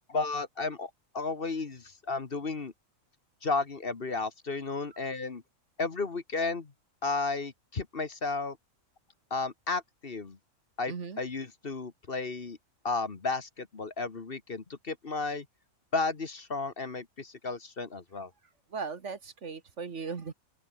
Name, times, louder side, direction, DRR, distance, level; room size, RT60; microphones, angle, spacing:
voice 1, 0.1-2.7 3.4-5.4 5.8-6.7 7.0-8.6 9.3-10.4 10.8-12.6 12.8-15.4 15.9-18.3, left 3 dB, 40° left, 1.6 m, -33 dB
voice 2, 10.9-11.2 18.7-20.3, right 5 dB, 55° right, 1.9 m, -37 dB
open air
omnidirectional pair, 1.4 m